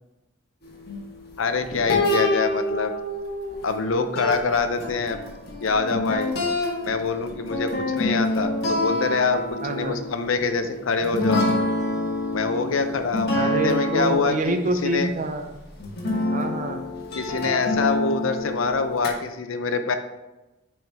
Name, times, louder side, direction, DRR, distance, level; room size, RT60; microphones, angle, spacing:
sound 1, 0.6-3.9 4.2-14.5 15.2-15.3 15.8-19.1, left 2 dB, 55° left, 1.5 m, -27 dB
voice 1, 1.4-2.9 3.6-5.2 5.6-6.3 6.8-11.4 12.3-15.1 17.1-19.9, left 4 dB, 85° left, 8 dB, 0.7 m, -25 dB
voice 2, 9.6-10.0 13.4-15.6 16.3-16.9, right 2 dB, 40° right, 7 dB, 0.6 m, -26 dB
9.5 x 4.4 x 3.5 m, 1.0 s
head